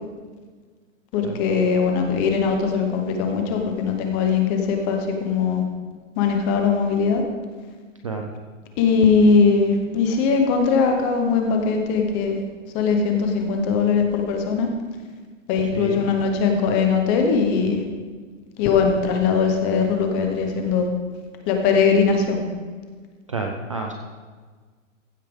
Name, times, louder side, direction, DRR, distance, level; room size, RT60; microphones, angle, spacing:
voice 1, 1.1-5.6 6.2-7.2 8.8-12.4 12.7-14.7 15.5-17.8 18.6-20.9 21.5-22.4, left 5 dB, 15° left, 4 dB, 0.8 m, -20 dB
voice 2, 23.3-23.9, right 4 dB, 25° right, 3 dB, 0.4 m, -29 dB
15.0 x 8.2 x 3.6 m, 1.5 s
hypercardioid pair, 170°, 39 cm